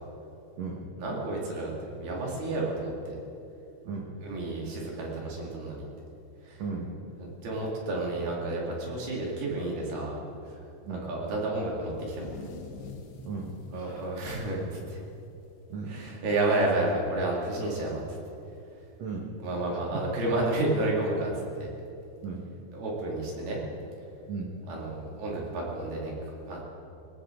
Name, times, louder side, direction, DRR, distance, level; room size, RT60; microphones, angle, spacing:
voice 1, 1.0-3.2 4.2-5.9 6.4-6.6 7.2-10.2 10.5-10.6 10.9-12.3 13.7-15.0 15.9-18.2 19.4-21.3 21.6-21.7 22.7-23.6 24.7-26.1 26.5-26.6, right 2 dB, 60° right, -3 dB, 4.2 m, -31 dB
voice 2, 6.6-6.9 10.9-11.1 13.2-14.1 15.7-16.0 19.0-19.3 19.9-20.0 22.2-22.5 24.3-24.5, right 4 dB, 90° right, -1 dB, 1.4 m, -36 dB
sound 1, 11.8-15.5 15.8-16.0 16.4-16.8 17.9-18.0 19.1-19.2, left 4 dB, 70° left, 3.5 m, -46 dB
20.0 x 17.5 x 3.8 m, 2.7 s
omnidirectional pair, 5.4 m